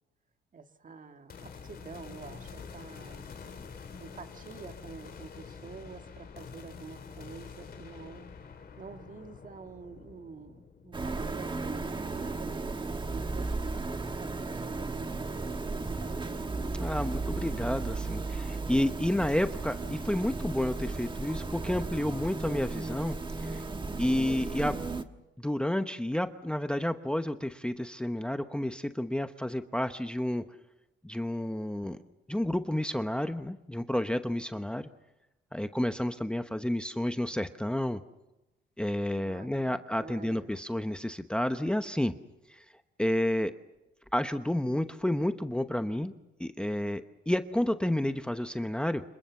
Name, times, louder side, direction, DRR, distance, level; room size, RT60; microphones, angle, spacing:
voice 1, 0.5-3.4 4.0-8.3 8.8-13.8 14.2-16.5 39.2-40.5, right 5 dB, 40° right, 7 dB, 1.7 m, -48 dB
sound 1, 1.3-12.6, left 5 dB, 50° left, 3.3 m, -47 dB
sound 2, 10.9-25.0, right 3 dB, 25° right, 1.4 m, -35 dB
voice 2, 16.8-23.6 24.0-24.7 25.4-30.4 31.0-32.0 32.3-34.9 35.5-38.0 38.8-42.1 42.5-42.6 43.0-43.5 44.1-46.1 46.4-49.0, left 1 dB, 5° left, 9 dB, 0.9 m, -30 dB
26.5 x 22.5 x 7.2 m, 0.98 s
cardioid pair, 90°, 20 cm